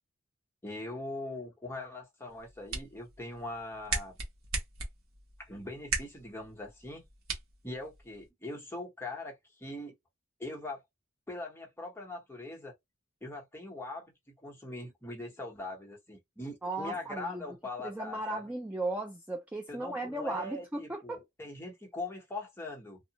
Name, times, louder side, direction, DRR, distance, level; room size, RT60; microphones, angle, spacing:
voice 1, 0.6-4.2 5.4-7.0 7.6-9.9 10.4-10.8 11.3-12.7 13.2-14.1 14.4-18.4 19.7-23.0, left 2 dB, 10° left, 0.8 m, -41 dB
sound 1, 2.3-8.3, right 4 dB, 65° right, 0.9 m, -39 dB
voice 2, 16.6-17.4 17.8-21.2, right 2 dB, 5° right, 0.3 m, -36 dB
2.7 x 2.0 x 2.8 m
head